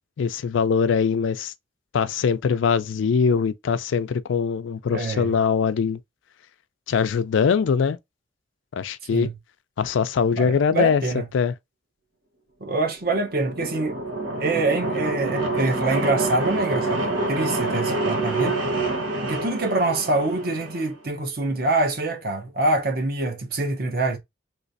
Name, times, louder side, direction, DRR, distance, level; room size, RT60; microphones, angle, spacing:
voice 1, 0.2-1.5 1.9-6.0 6.9-8.0 8.7-9.3 9.8-11.0 11.3-11.5, left 6 dB, 75° left, 0.4 m, -22 dB
voice 2, 4.9-5.3 9.1-9.4 10.3-11.3 12.6-14.0 14.4-18.6 19.2-24.2, right 2 dB, 50° right, 0.8 m, -25 dB
sound 1, 13.0-20.9, right 2 dB, 90° right, 1.0 m, -27 dB
3.2 x 3.1 x 2.5 m
head